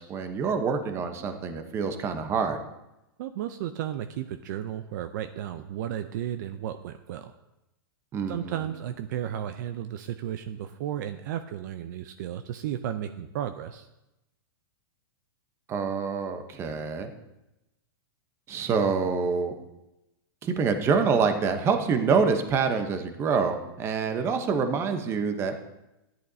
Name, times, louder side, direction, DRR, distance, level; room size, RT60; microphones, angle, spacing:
voice 1, 0.0-2.6 8.1-8.7 15.7-17.1 18.5-19.5 20.4-25.6, right 5 dB, 20° right, 7 dB, 0.9 m, -26 dB
voice 2, 3.2-7.3 8.3-13.9, right 10 dB, 50° right, 9 dB, 0.5 m, -34 dB
14.0 x 10.5 x 2.7 m, 0.94 s
supercardioid pair, 155°, 13 cm